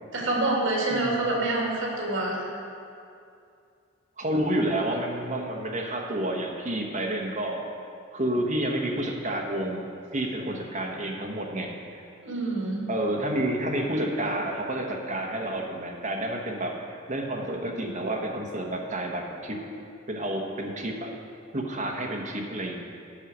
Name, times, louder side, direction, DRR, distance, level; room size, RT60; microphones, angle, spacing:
voice 1, 0.1-2.4 12.2-12.9, right 2 dB, 65° right, -3 dB, 2.3 m, -26 dB
voice 2, 0.9-1.3 4.2-7.7 8.1-11.7 12.9-19.6 20.1-21.1 21.5-22.8, right 1 dB, 35° right, 0 dB, 1.0 m, -29 dB
8.8 x 6.3 x 6.1 m, 2.5 s
head